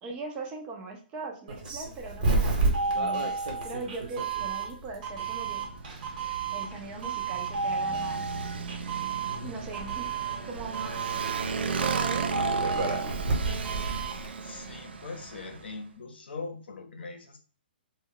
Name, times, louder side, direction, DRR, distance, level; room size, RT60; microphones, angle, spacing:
voice 1, 0.0-5.7 6.5-8.5 9.4-11.4 11.8-13.2, right 4 dB, 20° right, 2 dB, 0.4 m, -40 dB
Doorbell, 1.5-14.3, right 3 dB, 50° right, 1.0 m, -31 dB
Motorcycle, 5.1-15.8, right 5 dB, 85° right, 0.4 m, -36 dB
voice 2, 14.4-17.4, left 4 dB, 75° left, 5 dB, 0.6 m, -41 dB
2.1 x 2.1 x 3.6 m, 0.41 s
hypercardioid pair, 155°, 6 cm